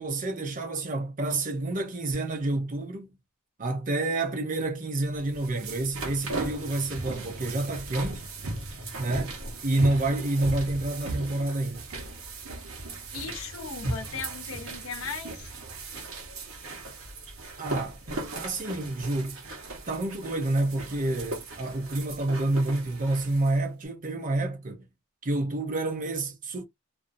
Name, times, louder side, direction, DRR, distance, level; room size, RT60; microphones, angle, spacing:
voice 1, 0.0-3.1 3.6-8.3 9.0-9.4 9.6-11.8 17.6-18.0 18.3-19.4 19.9-24.9 25.2-26.6, right 2 dB, 40° right, 0.8 m, -28 dB
sound 1, 5.2-23.6, right 2 dB, 80° right, 1.1 m, -37 dB
voice 2, 13.1-15.5, left 5 dB, 80° left, 0.7 m, -37 dB
2.6 x 2.3 x 2.6 m
head